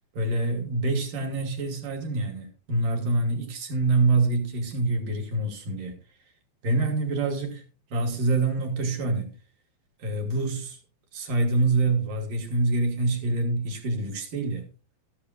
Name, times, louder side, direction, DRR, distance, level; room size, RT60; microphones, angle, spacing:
voice 1, 0.1-6.0 6.6-7.6 7.9-9.3 10.0-10.8 11.1-14.7, right 2 dB, 65° right, 3.3 m, -26 dB
12.5 x 11.5 x 2.4 m
omnidirectional pair, 4.4 m